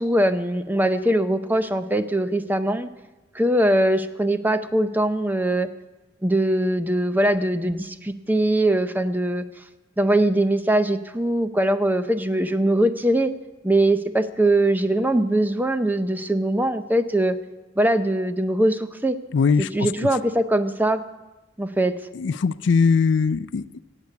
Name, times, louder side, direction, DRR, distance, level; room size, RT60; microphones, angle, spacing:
voice 1, 0.0-2.9 3.3-5.7 6.2-9.4 10.0-13.3 13.6-17.4 17.8-19.2 19.6-21.0 21.6-21.9, right 1 dB, 10° right, 0.5 m, -21 dB
voice 2, 19.3-19.9 22.1-23.8, left 5 dB, 65° left, 0.4 m, -21 dB
17.5 x 8.2 x 8.3 m
head